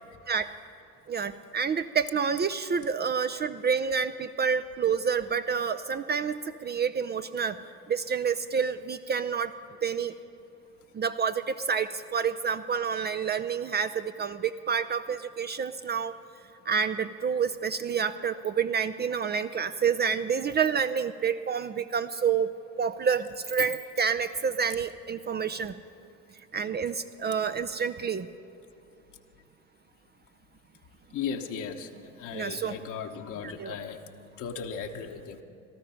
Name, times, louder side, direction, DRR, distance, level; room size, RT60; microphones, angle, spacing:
voice 1, 1.1-7.6 7.9-9.5 9.8-10.1 10.9-16.1 16.7-22.5 22.8-25.8 26.5-28.3 32.3-32.8 33.6-33.7, right 6 dB, 30° right, 11 dB, 0.5 m, -28 dB
voice 2, 31.1-31.9 32.2-34.0 34.4-35.4, left 6 dB, 65° left, 2 dB, 1.1 m, -36 dB
18.5 x 13.0 x 5.7 m, 2.7 s
hypercardioid pair, 60°, 33 cm